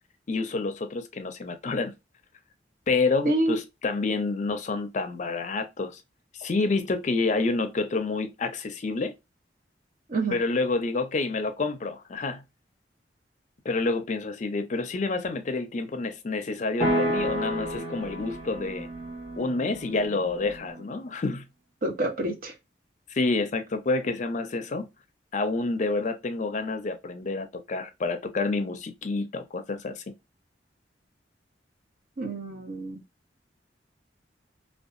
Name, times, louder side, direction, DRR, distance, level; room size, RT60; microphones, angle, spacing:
voice 1, 0.3-1.9 2.9-6.0 6.4-9.1 10.3-12.4 13.6-18.9 19.4-21.5 23.1-24.9 25.3-30.0, left 3 dB, 45° left, 0.4 m, -28 dB
voice 2, 3.2-3.6 10.1-10.4 21.8-22.5 32.2-33.0, right 2 dB, 55° right, 0.8 m, -27 dB
sound 1, 16.8-20.9, equal, 35° right, 1.4 m, -31 dB
2.7 x 2.2 x 2.4 m
head